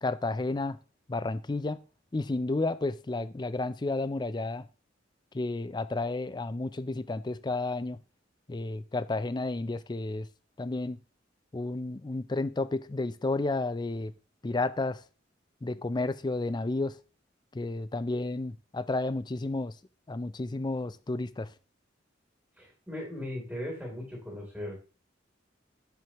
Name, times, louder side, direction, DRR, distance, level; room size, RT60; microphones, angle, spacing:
voice 1, 0.0-0.8 1.1-1.8 2.1-4.7 5.3-8.0 8.5-10.3 10.6-11.0 11.5-14.1 14.4-15.0 15.6-17.0 17.5-19.7 20.1-21.5, left 2 dB, 25° left, 0.4 m, -31 dB
voice 2, 22.6-24.8, left 1 dB, 5° right, 3.3 m, -38 dB
10.5 x 7.6 x 3.0 m
head